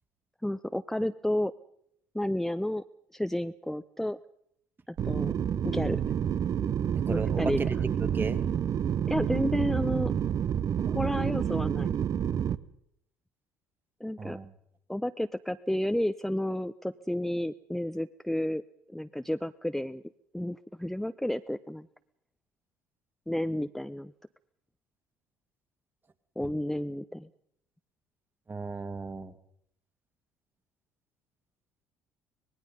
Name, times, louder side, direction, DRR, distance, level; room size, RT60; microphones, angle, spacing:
voice 1, 0.4-1.5 2.1-2.8 3.1-4.2 4.9-5.3 5.6-6.0 7.1-7.6 9.1-10.1 10.8-11.9 14.0-14.4 14.9-18.6 18.9-20.0 20.3-21.9 23.3-24.1 26.4-27.3, left 1 dB, 5° left, 11 dB, 0.7 m, -31 dB
sound 1, 5.0-12.6, right 9 dB, 45° right, 0.9 m, -29 dB
voice 2, 7.1-8.4 14.2-14.5 26.4-26.5 28.5-29.3, right 4 dB, 25° right, 10 dB, 2.0 m, -34 dB
25.5 x 19.5 x 5.4 m, 0.72 s
hypercardioid pair, 60°, 8 cm